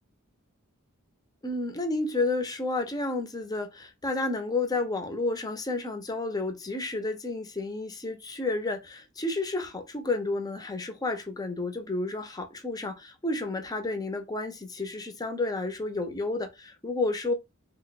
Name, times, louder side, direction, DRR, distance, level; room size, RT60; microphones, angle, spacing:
voice 1, 1.4-17.3, left 2 dB, 20° left, 0.5 m, -31 dB
2.6 x 2.1 x 4.0 m
head